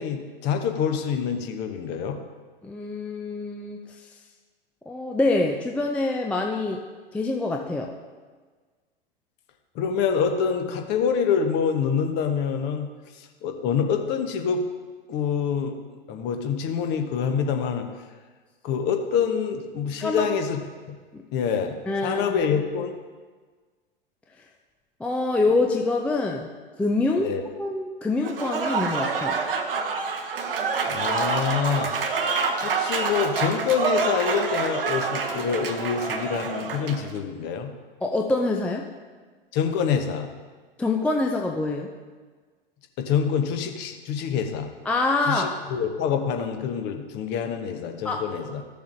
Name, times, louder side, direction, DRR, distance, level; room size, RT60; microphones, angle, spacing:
voice 1, 0.0-2.2 9.7-12.9 13.2-14.6 15.1-15.7 16.1-17.9 18.6-20.6 21.3-21.7 22.0-23.0 27.2-27.4 30.9-31.9 32.6-37.7 39.5-40.3 43.0-44.7 45.3-48.6, left 7 dB, 35° left, 5 dB, 1.0 m, -26 dB
voice 2, 2.6-3.8 4.9-6.8 7.1-7.9 20.0-20.3 21.1-21.2 21.9-22.3 25.0-26.5 26.8-27.3 27.6-29.4 38.0-38.8 40.8-41.9 44.9-45.6 48.0-48.2, left 2 dB, 5° left, 1 dB, 0.4 m, -25 dB
Applause / Crowd, 28.2-37.1, right 4 dB, 70° right, 1.0 m, -27 dB
14.0 x 6.9 x 2.6 m, 1.4 s
figure-of-eight pair, 90°, 29 cm